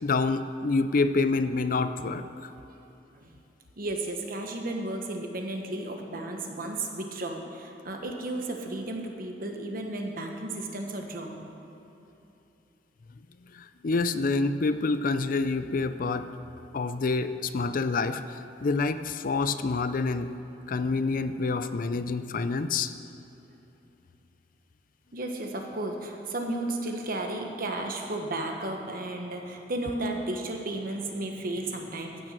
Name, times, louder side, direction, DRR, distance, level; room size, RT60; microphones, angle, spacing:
voice 1, 0.0-2.2 13.5-16.3 16.7-20.3 20.7-22.9, left 3 dB, 50° left, 11 dB, 0.5 m, -27 dB
voice 2, 3.8-11.5 25.1-32.3, right 2 dB, 55° right, 3 dB, 1.3 m, -33 dB
15.5 x 6.1 x 6.6 m, 3.0 s
head